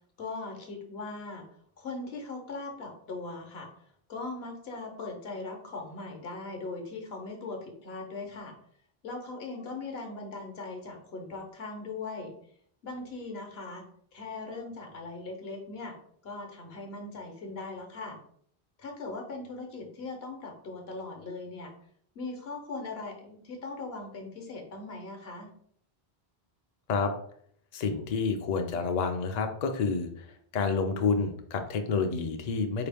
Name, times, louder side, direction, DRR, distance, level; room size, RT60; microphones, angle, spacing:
voice 1, 0.2-1.5 1.8-3.7 4.1-8.5 9.0-12.3 12.8-13.8 14.1-15.9 16.2-18.2 18.8-21.7 22.1-25.5, left 3 dB, 75° left, 3 dB, 1.1 m, -39 dB
voice 2, 27.7-30.1 30.5-32.9, left 4 dB, 55° left, 5 dB, 0.5 m, -29 dB
4.5 x 2.9 x 3.4 m, 0.64 s
omnidirectional pair, 1.1 m